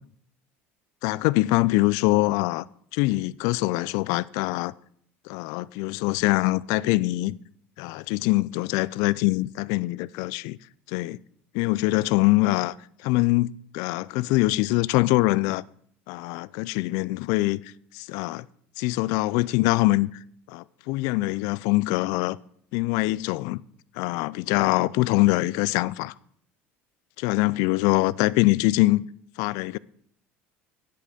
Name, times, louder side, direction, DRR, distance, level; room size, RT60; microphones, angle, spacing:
voice 1, 1.0-2.6 2.9-4.7 5.3-7.3 7.8-10.6 10.9-11.2 11.5-12.7 13.0-15.6 16.1-17.6 17.9-18.4 18.8-20.1 20.5-22.4 22.7-23.6 24.0-26.1 27.2-29.0 29.4-29.8, left 20 dB, 70° left, 0.4 m, -23 dB
10.0 x 8.3 x 5.0 m
hypercardioid pair, 80°, 6 cm